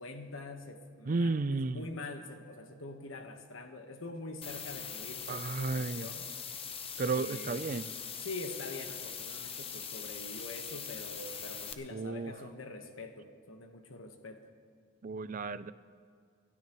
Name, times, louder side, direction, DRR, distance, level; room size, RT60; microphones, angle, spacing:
voice 1, 0.0-6.3 7.1-7.6 8.2-14.4, left 2 dB, 90° left, 5 dB, 1.3 m, -44 dB
voice 2, 1.1-1.9 5.3-6.1 7.0-7.9 11.9-12.3 15.0-15.7, right 3 dB, 40° right, 15 dB, 0.4 m, -33 dB
sound 1, 4.4-11.7, left 7 dB, 30° left, 0.8 m, -42 dB
27.5 x 12.5 x 3.1 m, 2.1 s
head